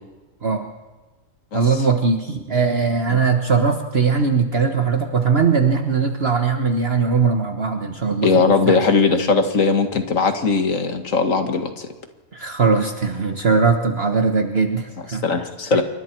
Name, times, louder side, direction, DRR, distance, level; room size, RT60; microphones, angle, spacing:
voice 1, 1.5-8.9 12.3-15.2 15.7-15.8, right 5 dB, 50° right, 5 dB, 1.4 m, -20 dB
voice 2, 8.2-11.9 15.2-15.8, left 4 dB, 70° left, 6 dB, 2.2 m, -19 dB
27.5 x 24.5 x 4.6 m, 1.2 s
omnidirectional pair, 1.4 m